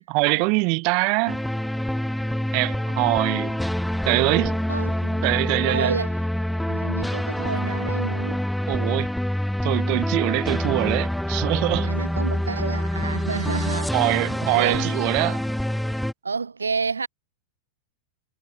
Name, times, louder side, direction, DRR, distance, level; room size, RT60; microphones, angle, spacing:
voice 1, 0.0-1.4 2.5-3.6 4.0-4.6 5.2-6.0 8.7-9.1 9.6-11.9 13.9-15.4, right 32 dB, 45° right, 0.7 m, -23 dB
sound 1, 1.3-16.1, left 1 dB, ahead, 1.0 m, -26 dB
voice 2, 4.7-5.2 5.7-6.2 6.7-8.5 11.9-14.2 14.5-14.9 16.2-17.1, right 4 dB, 75° right, 1.7 m, -30 dB
figure-of-eight pair, 90°, 0 cm